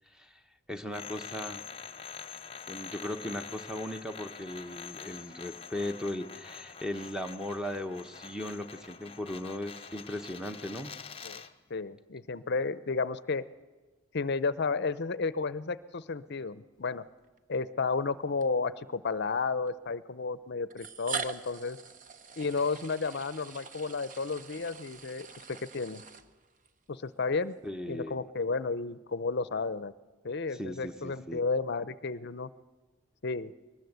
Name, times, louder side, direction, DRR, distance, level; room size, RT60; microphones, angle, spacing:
voice 1, 0.7-1.6 2.7-11.0 27.6-28.2 30.6-31.4, left 1 dB, 5° right, 8 dB, 0.9 m, -37 dB
sound 1, 0.9-11.6, left 6 dB, 25° left, 0.9 m, -45 dB
voice 2, 11.7-13.4 14.1-17.0 17.5-21.8 22.4-26.0 26.9-27.5 27.9-29.9 30.2-32.5 33.2-33.5, left 4 dB, 55° left, 15 dB, 0.6 m, -32 dB
sound 2, 17.2-17.4 18.4-18.5 19.7-19.8 20.7-26.7, right 6 dB, 40° right, 1.0 m, -42 dB
22.0 x 19.5 x 8.0 m, 1.3 s
head